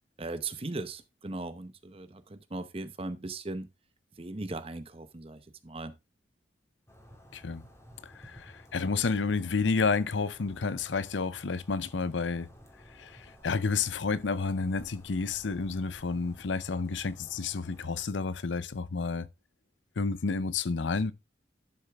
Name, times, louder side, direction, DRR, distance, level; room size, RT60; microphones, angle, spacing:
voice 1, 0.2-3.7 4.2-5.9, right 2 dB, 30° right, 0.8 m, -38 dB
sound 1, 6.9-18.0, equal, 15° left, 2.1 m, -54 dB
voice 2, 8.0-12.5 13.0-19.3 20.0-21.1, left 4 dB, 90° left, 0.6 m, -30 dB
11.5 x 6.6 x 3.4 m
head